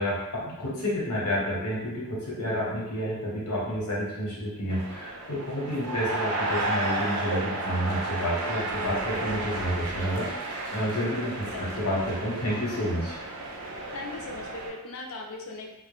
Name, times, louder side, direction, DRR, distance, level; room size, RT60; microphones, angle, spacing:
voice 1, 0.0-13.2, equal, 90° left, -5 dB, 0.9 m, -30 dB
sound 1, 4.7-14.7, right 2 dB, 80° right, 0.5 m, -33 dB
voice 2, 13.9-15.7, left 3 dB, 65° left, 0 dB, 0.5 m, -39 dB
2.2 x 2.0 x 3.0 m, 0.91 s
head